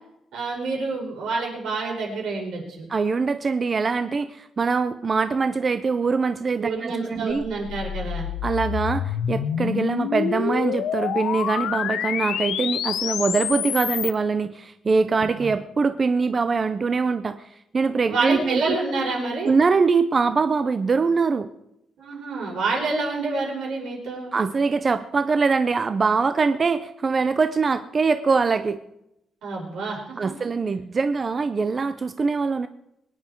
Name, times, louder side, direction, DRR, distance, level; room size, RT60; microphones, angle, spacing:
voice 1, 0.3-2.8 6.6-8.3 15.4-15.5 18.1-19.5 22.0-24.3 29.4-30.3, right 3 dB, 80° right, -2 dB, 5.7 m, -28 dB
voice 2, 2.9-7.4 8.4-17.5 17.7-18.8 19.5-21.5 24.3-28.8 30.2-32.7, right 4 dB, 30° right, 10 dB, 0.5 m, -23 dB
sound 1, 7.3-14.1, left 9 dB, 85° left, 0.7 m, -27 dB
23.0 x 9.9 x 4.5 m, 0.82 s
cardioid pair, 165°, 0 cm